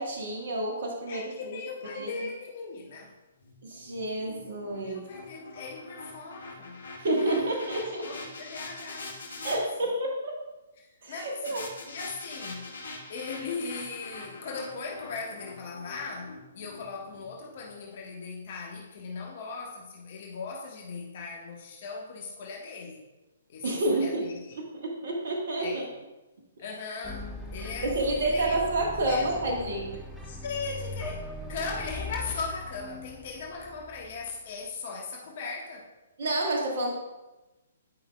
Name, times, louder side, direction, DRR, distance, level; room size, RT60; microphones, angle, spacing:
voice 1, 0.0-1.6 2.0-2.1 3.6-5.0 7.0-8.1 9.4-10.3 11.0-11.6 23.6-24.3 24.5-25.8 27.8-29.8 36.2-36.9, right 1 dB, 60° right, -1 dB, 1.4 m, -29 dB
voice 2, 1.0-3.1 4.7-6.8 7.2-9.6 10.8-12.7 13.1-23.0 23.5-24.6 25.6-25.9 26.6-27.9 28.2-28.6 29.1-29.5 30.2-35.9, left 4 dB, 50° left, 0 dB, 1.1 m, -39 dB
sound 1, 3.4-9.6 11.4-17.7, left 2 dB, 65° left, 1.6 m, -44 dB
sound 2, 27.0-34.3, left 2 dB, ahead, 0.8 m, -40 dB
10.5 x 5.2 x 2.2 m, 1.1 s
figure-of-eight pair, 125°, 0 cm